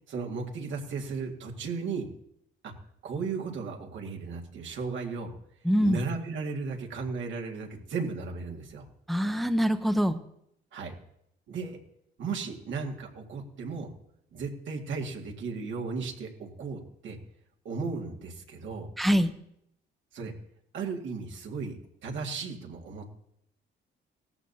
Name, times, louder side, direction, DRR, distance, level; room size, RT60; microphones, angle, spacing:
voice 1, 0.1-2.1 2.6-2.7 3.0-5.3 5.8-8.9 10.7-10.9 11.5-11.8 12.2-13.9 14.3-17.2 17.6-18.9 20.1-20.3 20.7-23.1, right 4 dB, 75° right, 2 dB, 2.0 m, -35 dB
voice 2, 5.7-6.0 9.1-10.2 19.0-19.3, equal, ahead, 8 dB, 0.7 m, -24 dB
17.5 x 14.0 x 2.8 m, 0.75 s
cardioid pair, 90°, 20 cm